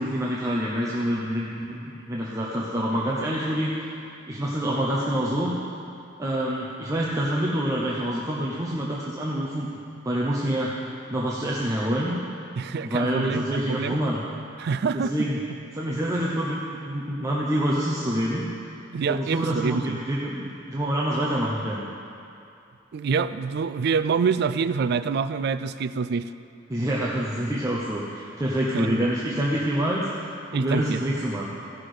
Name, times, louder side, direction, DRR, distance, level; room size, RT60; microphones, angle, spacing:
voice 1, 0.0-3.9 4.3-5.6 6.2-9.7 10.0-10.8 11.1-12.2 12.8-14.2 15.1-15.4 15.7-16.6 16.9-18.4 19.0-21.8 26.7-31.5, equal, 15° right, -5 dB, 0.8 m, -26 dB
voice 2, 12.6-14.0 14.6-15.3 18.9-20.0 22.9-26.3 28.7-29.0 30.5-31.0, right 5 dB, 60° right, 13 dB, 0.3 m, -26 dB
16.0 x 6.0 x 5.0 m, 2.6 s
head